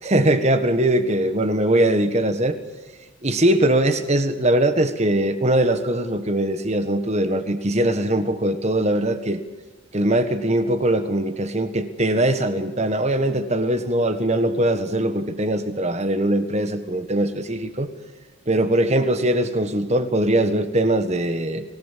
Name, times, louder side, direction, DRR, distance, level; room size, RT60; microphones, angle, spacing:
voice 1, 0.0-2.6 3.2-9.4 9.9-17.9 18.5-21.6, right 1 dB, 30° right, 10 dB, 1.4 m, -21 dB
27.0 x 18.0 x 7.4 m, 1.2 s
head